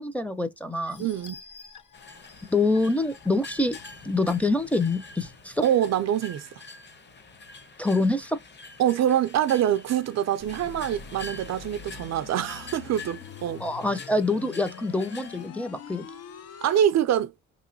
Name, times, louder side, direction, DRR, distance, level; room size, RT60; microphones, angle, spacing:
voice 1, 0.0-1.0 2.5-3.8 4.0-5.6 7.8-8.4 13.6-16.1, left 2 dB, 5° left, 0.7 m, -26 dB
sound 1, 0.8-5.3 5.8-5.9 6.3-6.4, left 5 dB, 75° left, 1.1 m, -51 dB
voice 2, 1.0-1.4 5.6-6.5 8.8-13.6 16.6-17.3, right 10 dB, 60° right, 0.5 m, -25 dB
sound 2, 1.9-15.5, left 3 dB, 35° left, 1.2 m, -45 dB
sound 3, 10.4-16.8, left 7 dB, 55° left, 0.7 m, -44 dB
3.7 x 3.0 x 2.6 m
cardioid pair, 90°, 30 cm